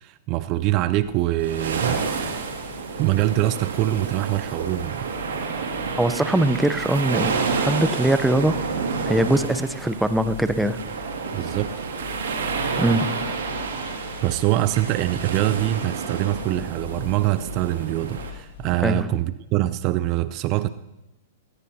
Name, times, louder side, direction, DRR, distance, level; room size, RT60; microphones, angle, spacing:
voice 1, 0.0-2.5 3.0-5.1 11.3-11.8 14.2-20.7, right 15 dB, 40° right, 15 dB, 0.5 m, -24 dB
sound 1, 0.6-18.7, left 7 dB, 75° left, 6.4 m, -43 dB
sound 2, 1.4-18.3, right 5 dB, 80° right, 2.3 m, -30 dB
voice 2, 6.0-8.6 9.1-10.8 12.8-13.1 18.8-19.1, right 1 dB, 5° right, 12 dB, 0.8 m, -21 dB
20.0 x 17.5 x 2.9 m, 0.97 s
hypercardioid pair, 120°, 0 cm